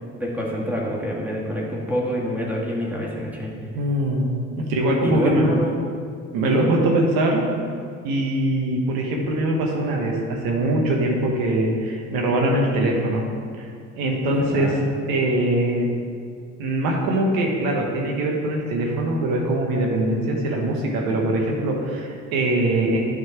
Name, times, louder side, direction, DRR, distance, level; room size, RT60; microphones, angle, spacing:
voice 1, 0.0-3.5 5.0-5.7 14.2-14.8, equal, 5° right, -4 dB, 1.7 m, -26 dB
voice 2, 3.7-4.3 4.6-5.5 6.3-7.5 8.0-13.2 13.6-13.7 13.9-15.9 16.6-23.0, right 1 dB, 70° right, 0 dB, 1.1 m, -22 dB
9.2 x 4.0 x 4.6 m, 2.2 s
hypercardioid pair, 55°, 37 cm